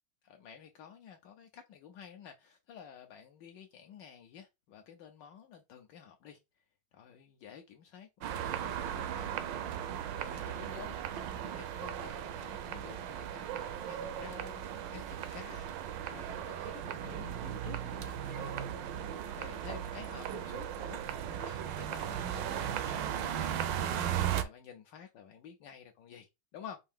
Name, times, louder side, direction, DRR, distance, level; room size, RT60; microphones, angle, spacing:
voice 1, 0.2-6.4 6.9-9.4 10.2-18.6 19.3-26.8, left 8 dB, 70° left, 1.2 m, -51 dB
sound 1, 8.2-24.4, right 10 dB, 75° right, 1.3 m, -37 dB
5.5 x 2.6 x 3.5 m
omnidirectional pair, 2.1 m